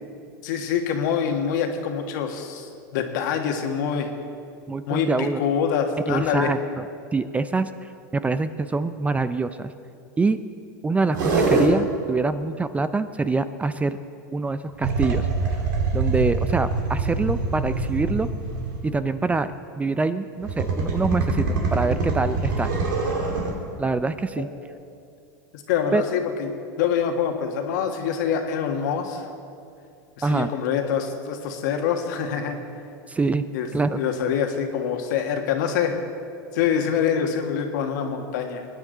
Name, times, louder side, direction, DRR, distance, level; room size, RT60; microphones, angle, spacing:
voice 1, 0.4-4.1 4.9-6.5 24.4-24.5 25.5-29.3 30.2-32.6 33.5-35.9 36.5-38.6, left 7 dB, 70° left, 4 dB, 1.6 m, -25 dB
voice 2, 4.7-5.4 6.1-6.8 7.1-7.7 8.1-9.7 10.2-10.4 10.8-14.0 14.3-15.3 15.9-18.3 18.8-19.5 19.8-22.7 23.8-24.5 25.9-26.0 30.2-30.5 33.1-33.4 33.7-34.0, right 3 dB, 15° right, 13 dB, 0.4 m, -25 dB
sound 1, 11.1-11.7 14.8-19.0 20.4-23.5, right 3 dB, 75° right, 2.5 m, -24 dB
21.5 x 9.8 x 4.0 m, 2.4 s
hypercardioid pair, 110°, 10 cm